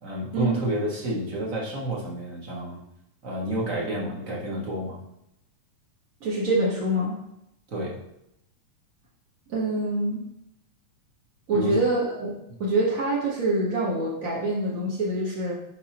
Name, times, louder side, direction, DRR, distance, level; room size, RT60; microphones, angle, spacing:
voice 1, 0.0-2.8 3.2-5.0 7.7-8.0 11.5-11.8 12.5-12.6, right 1 dB, 40° right, -4 dB, 1.3 m, -29 dB
voice 2, 6.2-7.2 9.5-10.2 11.5-12.3 12.6-15.5, right 1 dB, 60° right, -6 dB, 0.9 m, -25 dB
10.0 x 4.0 x 2.9 m, 0.81 s
omnidirectional pair, 3.4 m